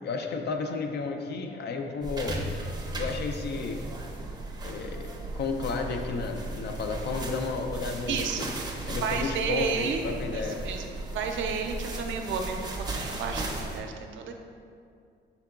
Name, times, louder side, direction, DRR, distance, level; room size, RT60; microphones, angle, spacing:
voice 1, 0.0-2.4 2.9-3.8 4.6-5.1 5.3-8.5 8.9-10.7, left 4 dB, 60° left, 4 dB, 0.4 m, -32 dB
sound 1, 2.0-13.8, right 2 dB, 20° right, 0.6 m, -36 dB
voice 2, 8.1-8.5 9.0-10.0 10.3-10.8 11.1-14.3, right 5 dB, 75° right, 4 dB, 0.5 m, -31 dB
5.7 x 3.6 x 2.3 m, 2.3 s
cardioid pair, 90°, 20 cm